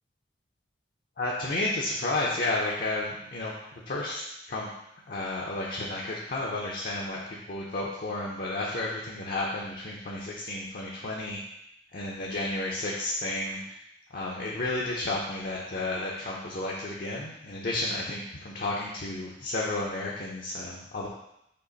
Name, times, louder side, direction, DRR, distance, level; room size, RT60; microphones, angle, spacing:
voice 1, 1.2-3.5 3.9-4.7 5.1-11.4 11.9-13.6 14.1-21.1, left 2 dB, 55° left, -4 dB, 0.6 m, -32 dB
5.3 x 2.5 x 3.9 m, 0.80 s
head